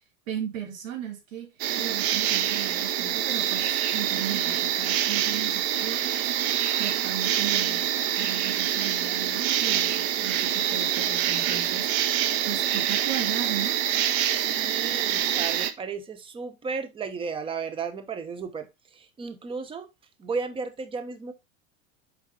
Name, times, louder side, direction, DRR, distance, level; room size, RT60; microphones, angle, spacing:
voice 1, 0.3-1.5 1.8-3.6 3.9-6.3 6.8-7.9 8.2-11.9 12.5-13.8, right 9 dB, 80° right, 2.9 m, -36 dB
sound 1, 1.6-15.7, right 11 dB, 55° right, 1.0 m, -26 dB
voice 2, 7.3-7.9 14.3-19.9 20.2-21.3, right 5 dB, 15° right, 0.8 m, -34 dB
6.4 x 4.7 x 3.7 m
supercardioid pair, 130°, 38 cm